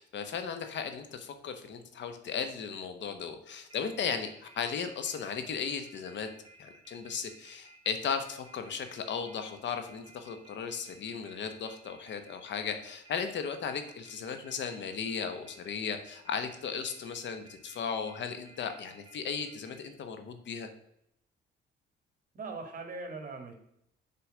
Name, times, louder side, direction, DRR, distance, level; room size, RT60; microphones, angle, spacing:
voice 1, 0.0-6.3 6.6-20.7, left 6 dB, 65° left, 7 dB, 1.2 m, -36 dB
sound 1, 3.7-19.9, right 2 dB, 25° right, 1.2 m, -56 dB
voice 2, 22.3-23.5, right 3 dB, 45° right, 4 dB, 1.9 m, -40 dB
6.9 x 4.4 x 6.4 m, 0.78 s
cardioid pair, 90°, 20 cm